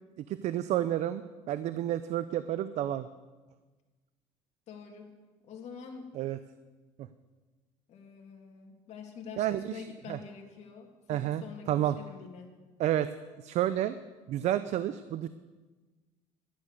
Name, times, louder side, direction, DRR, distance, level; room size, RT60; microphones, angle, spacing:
voice 1, 0.2-3.1 6.1-6.4 7.0-7.1 9.4-10.2 11.1-12.0 12.8-13.1 13.4-14.0 14.3-15.3, right 12 dB, 60° right, 13 dB, 0.6 m, -30 dB
voice 2, 4.7-5.1 5.4-6.1 7.9-12.5, left 6 dB, 55° left, 1 dB, 2.8 m, -46 dB
11.5 x 11.5 x 6.7 m, 1.3 s
cardioid pair, 110°, 13 cm